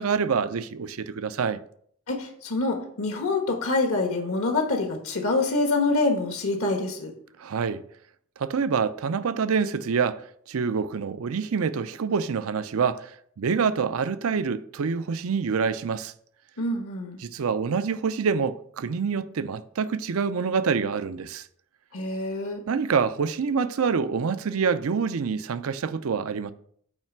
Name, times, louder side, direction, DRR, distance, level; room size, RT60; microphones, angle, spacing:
voice 1, 0.0-1.6 7.4-7.8 8.4-10.2 10.5-16.1 17.2-21.5 22.7-26.5, right 5 dB, 75° right, 0.5 m, -26 dB
voice 2, 2.1-7.1 16.6-17.2 21.9-22.6, left 2 dB, 75° left, 1.2 m, -26 dB
8.8 x 3.2 x 6.0 m
head